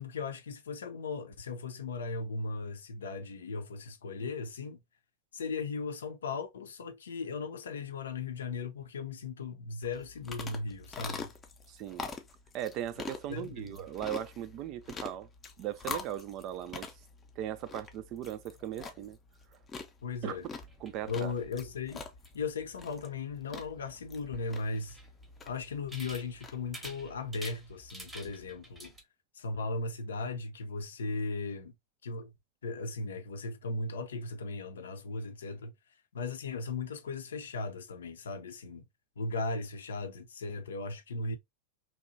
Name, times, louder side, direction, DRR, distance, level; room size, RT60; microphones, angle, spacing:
voice 1, 0.0-4.8 5.3-11.3 13.3-13.8 20.0-20.5 21.1-22.0 22.3-25.0 25.5-28.9 29.3-31.7 32.0-32.3 32.6-35.7 36.1-38.8 39.2-41.4, left 3 dB, 65° left, 0.5 m, -37 dB
sound 1, 9.8-26.9, left 4 dB, 20° left, 0.5 m, -45 dB
voice 2, 11.7-12.1 12.5-15.3 15.6-16.9 17.4-19.2 20.2-20.4 20.8-21.3, right 11 dB, 40° right, 0.3 m, -38 dB
sound 2, 20.6-29.0, right 1 dB, 10° right, 0.8 m, -51 dB
2.8 x 2.2 x 2.5 m
figure-of-eight pair, 90°, 0 cm